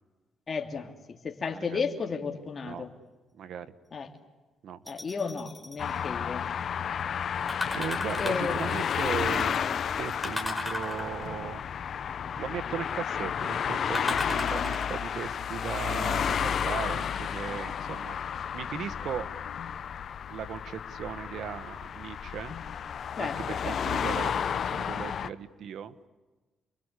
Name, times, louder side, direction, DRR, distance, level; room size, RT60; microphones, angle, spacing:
voice 1, 0.5-2.9 3.9-4.1 4.9-6.5 8.2-8.8 23.2-24.0, left 5 dB, 40° left, 4 dB, 3.0 m, -34 dB
voice 2, 1.5-1.8 2.6-2.8 3.3-3.7 4.6-4.8 7.7-11.6 12.4-18.2 18.5-19.3 20.3-22.5 23.2-25.9, right 8 dB, 70° right, 11 dB, 1.4 m, -37 dB
sound 1, 4.9-5.8 7.5-8.6 10.2-11.4 13.9-15.1 15.8-15.9, left 2 dB, 5° left, 5.8 m, -35 dB
sound 2, 5.8-25.3, left 8 dB, 55° left, 0.9 m, -32 dB
sound 3, 8.2-9.5 11.2-11.7 14.1-14.3 14.6-14.7 16.4-17.2 18.7-19.2 19.5-19.7 20.0-20.1 22.5-22.9 23.2-24.3, left 9 dB, 70° left, 2.5 m, -47 dB
29.5 x 23.0 x 8.4 m, 1.2 s
cardioid pair, 90°, 0 cm